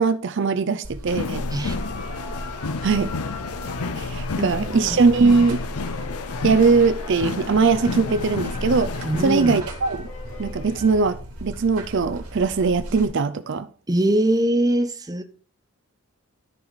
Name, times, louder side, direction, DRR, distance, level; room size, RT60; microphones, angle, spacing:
voice 1, 0.0-1.4 2.8-3.1 4.0-5.6 6.4-10.1 10.4-13.7, right 4 dB, 55° right, 0.5 m, -20 dB
Buzz, 0.8-13.0, equal, 90° right, 2.9 m, -36 dB
sound 1, 1.1-9.6, left 4 dB, 90° left, 0.6 m, -31 dB
sound 2, 1.5-11.1, left 2 dB, 70° left, 2.9 m, -41 dB
voice 2, 4.4-5.0 9.0-9.6 13.9-15.2, right 1 dB, 15° right, 0.7 m, -22 dB
13.5 x 4.8 x 4.0 m
head